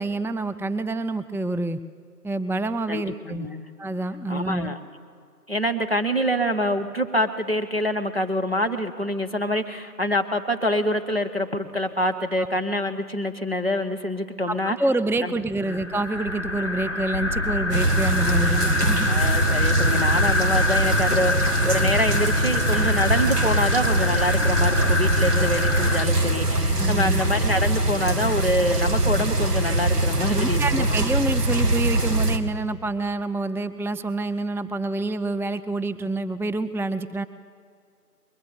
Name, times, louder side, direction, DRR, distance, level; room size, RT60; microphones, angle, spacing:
voice 1, 0.0-1.8 2.2-3.5 3.8-4.7 12.4-12.5 14.5-19.1 26.8-27.2 30.3-37.2, right 2 dB, 5° right, 11 dB, 0.3 m, -27 dB
voice 2, 2.9-3.7 4.3-4.8 5.5-14.8 15.2-15.3 15.7-15.8 18.4-18.6 19.1-30.9, left 1 dB, 40° right, 5 dB, 0.8 m, -26 dB
sound 1, 15.6-26.1, left 2 dB, 50° left, 0.5 m, -26 dB
sound 2, 17.7-32.4, right 1 dB, 80° right, 1.4 m, -22 dB
21.5 x 9.6 x 7.0 m, 2.2 s
figure-of-eight pair, 175°, 47 cm